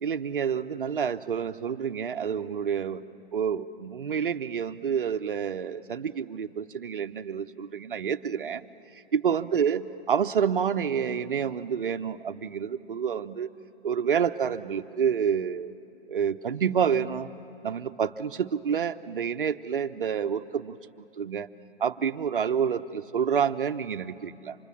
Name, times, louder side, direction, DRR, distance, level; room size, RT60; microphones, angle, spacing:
voice 1, 0.0-3.0 3.3-8.7 9.1-13.5 13.8-15.7 16.1-17.3 17.6-20.8 21.2-21.5 21.8-24.6, right 7 dB, 55° right, 10 dB, 1.0 m, -28 dB
29.5 x 26.5 x 7.4 m, 2.8 s
figure-of-eight pair, 130°, 31 cm